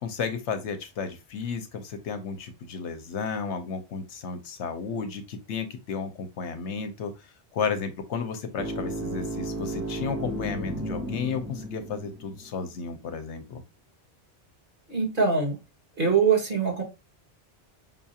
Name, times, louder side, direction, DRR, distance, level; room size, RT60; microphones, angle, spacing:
voice 1, 0.0-7.1 7.5-13.6, left 5 dB, 75° left, 8 dB, 1.0 m, -33 dB
sound 1, 8.6-12.5, right 1 dB, 15° right, 0.6 m, -34 dB
voice 2, 14.9-15.6 16.0-16.8, right 5 dB, 50° right, -1 dB, 1.7 m, -23 dB
5.4 x 2.4 x 2.7 m, 0.25 s
omnidirectional pair, 1.2 m